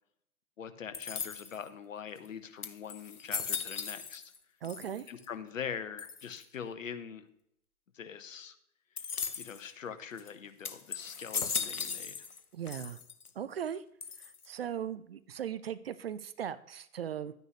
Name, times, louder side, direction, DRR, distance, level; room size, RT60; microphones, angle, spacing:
voice 1, 0.6-4.3 5.1-7.3 7.9-8.6 9.4-12.2, left 7 dB, 60° left, 10 dB, 1.2 m, -43 dB
sound 1, 0.9-1.7 2.3-2.4 2.6-4.4 4.6-5.3 6.0-6.4 9.0-9.6 10.2-10.3 10.6-12.4 12.7-13.3 14.0-14.6, left 6 dB, 80° left, 1.0 m, -38 dB
voice 2, 4.6-5.1 12.5-13.0 13.4-13.8 14.2-17.3, right 9 dB, 45° right, 15 dB, 0.5 m, -38 dB
11.0 x 9.4 x 3.2 m, 0.71 s
figure-of-eight pair, 120°, 44 cm